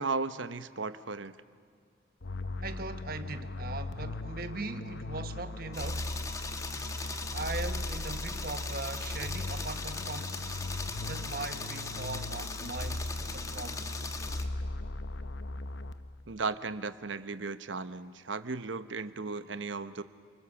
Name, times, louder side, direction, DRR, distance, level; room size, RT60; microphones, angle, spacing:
voice 1, 0.0-1.3 16.3-20.0, right 4 dB, 85° right, 1.0 m, -35 dB
sound 1, 2.2-16.3, left 2 dB, 70° left, 0.9 m, -38 dB
voice 2, 2.6-6.1 7.3-10.7 11.0-13.9, right 3 dB, 50° right, 1.2 m, -40 dB
sound 2, 5.7-14.4, left 3 dB, 15° left, 1.1 m, -40 dB
29.0 x 21.0 x 7.2 m
head